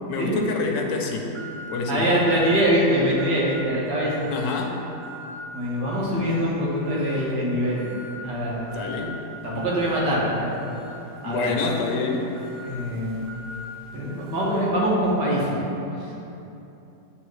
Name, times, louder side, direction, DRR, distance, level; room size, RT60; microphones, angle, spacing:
voice 1, 0.1-1.4 1.7-2.3 4.3-4.8 8.7-9.2 11.2-12.4, left 4 dB, 85° left, 1 dB, 1.3 m, -27 dB
sound 1, 1.3-1.8 2.3-2.7 3.2-3.7 4.1-4.5 5.0-5.4 5.9-6.4 6.8-7.3 7.8-8.2 8.7-9.1 9.6-10.0 10.5-14.7, left 1 dB, 50° right, 0.8 m, -41 dB
voice 2, 1.9-4.1 5.5-7.9 8.2-8.8 9.4-10.6 11.2-11.5 12.7-13.3 13.9-15.6, equal, 75° right, -6 dB, 1.8 m, -23 dB
9.0 x 3.3 x 3.1 m, 2.9 s
omnidirectional pair, 1.9 m